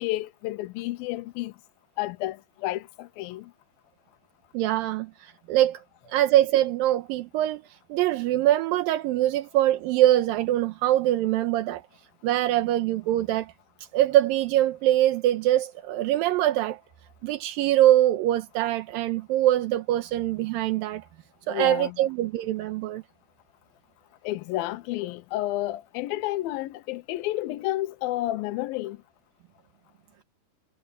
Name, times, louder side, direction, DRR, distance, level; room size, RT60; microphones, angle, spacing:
voice 1, 0.0-1.5 2.0-3.5 21.5-22.0 24.2-29.0, left 16 dB, 85° left, 2.5 m, -31 dB
voice 2, 4.5-5.8 6.1-11.8 12.2-13.5 13.9-16.8 17.2-21.0 21.5-23.0, right 13 dB, 80° right, 2.5 m, -23 dB
omnidirectional pair, 4.2 m